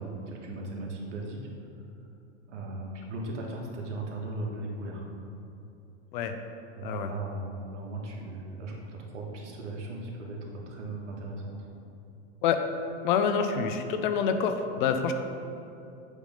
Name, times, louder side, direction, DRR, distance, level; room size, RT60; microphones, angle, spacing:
voice 1, 0.0-1.5 2.5-5.1 6.8-11.7, right 2 dB, 90° right, -1 dB, 1.6 m, -37 dB
voice 2, 13.0-15.1, left 7 dB, 45° left, 7 dB, 0.5 m, -27 dB
8.2 x 3.5 x 5.2 m, 2.7 s
supercardioid pair, 155°, 35 cm